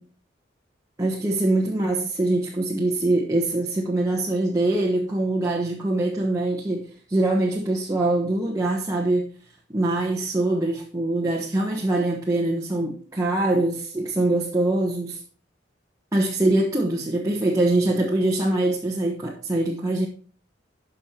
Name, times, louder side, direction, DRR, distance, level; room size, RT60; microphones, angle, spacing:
voice 1, 1.0-9.3 9.7-15.2 16.1-20.1, right 2 dB, 20° right, 1.2 m, -23 dB
12.5 x 5.5 x 4.3 m
head